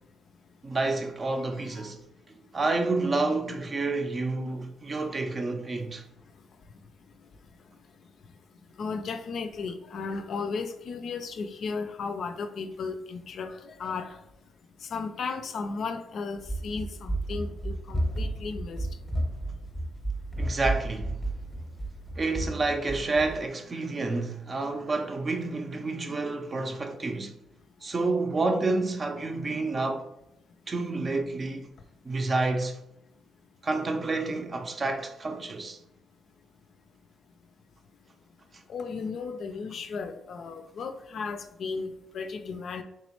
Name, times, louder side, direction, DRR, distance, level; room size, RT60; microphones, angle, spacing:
voice 1, 0.6-2.0 2.5-6.0 20.4-21.2 22.2-27.3 27.8-30.1 30.7-31.7 32.0-32.8 33.6-35.8, right 3 dB, 35° right, 0.5 m, -29 dB
voice 2, 8.8-13.5 13.8-14.1 14.9-18.8 38.7-42.8, left 4 dB, 60° left, 0.4 m, -35 dB
Run, 16.4-23.4, right 1 dB, 10° left, 0.7 m, -32 dB
3.5 x 3.0 x 3.0 m
cardioid pair, 90°, 0 cm